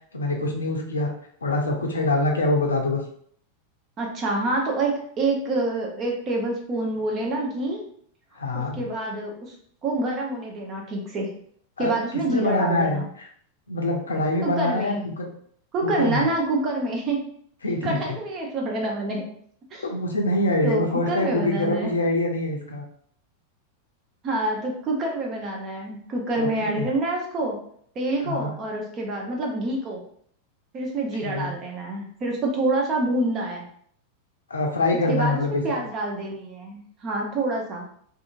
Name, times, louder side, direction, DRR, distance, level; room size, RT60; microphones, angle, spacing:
voice 1, 0.1-1.1 1.4-3.0 8.4-8.8 11.8-11.9 12.3-13.3 13.7-15.3 15.8-16.3 17.6-18.2 19.8-22.8 26.3-26.9 28.2-28.5 31.1-31.5 34.5-35.6, left 2 dB, 75° left, 1 dB, 0.5 m, -25 dB
voice 2, 4.0-7.8 8.5-9.5 9.8-11.3 11.8-13.1 14.4-15.0 15.7-17.3 17.8-19.3 19.7-19.9 20.6-21.9 24.2-27.6 28.0-30.0 30.7-33.7 35.1-37.9, right 2 dB, 30° right, 0 dB, 0.7 m, -27 dB
2.7 x 2.5 x 2.5 m, 0.63 s
figure-of-eight pair, 90°, 0 cm